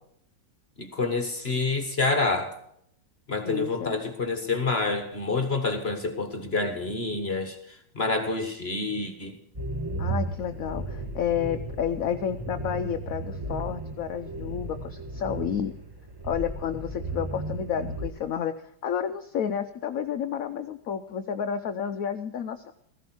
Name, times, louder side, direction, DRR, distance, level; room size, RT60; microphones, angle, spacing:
voice 1, 0.8-2.5 3.3-7.6 7.9-9.4, left 3 dB, 35° left, 7 dB, 1.5 m, -27 dB
voice 2, 3.4-4.0 10.0-15.7 16.2-18.5 18.8-22.7, left 8 dB, 60° left, 9 dB, 0.9 m, -30 dB
sound 1, 9.5-18.1, right 2 dB, 15° right, 1.0 m, -35 dB
15.5 x 15.0 x 4.5 m, 0.70 s
omnidirectional pair, 2.0 m